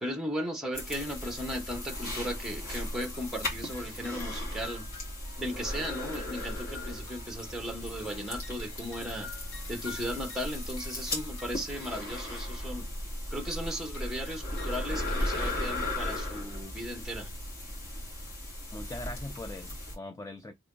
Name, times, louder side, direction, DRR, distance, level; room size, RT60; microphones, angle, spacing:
voice 1, 0.0-4.8 5.4-9.3 9.7-12.8 13.3-17.3, equal, ahead, 0.9 m, -36 dB
sound 1, 0.7-20.0, left 1 dB, 40° left, 2.3 m, -37 dB
sound 2, 0.8-2.5 2.8-13.0 13.3-16.3, left 4 dB, 85° left, 2.1 m, -51 dB
voice 2, 18.7-20.5, left 2 dB, 15° left, 0.3 m, -41 dB
3.7 x 3.3 x 3.7 m
head